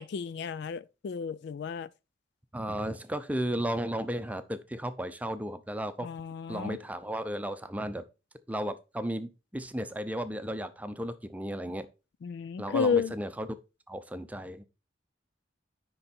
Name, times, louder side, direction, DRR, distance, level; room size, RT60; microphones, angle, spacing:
voice 1, 0.0-1.9 6.0-6.8 12.2-13.1, left 6 dB, 60° left, 0.4 m, -32 dB
voice 2, 2.5-6.1 6.5-8.0 8.5-11.9 12.6-13.5 13.9-14.7, right 1 dB, 10° right, 0.6 m, -34 dB
10.0 x 3.9 x 4.2 m
head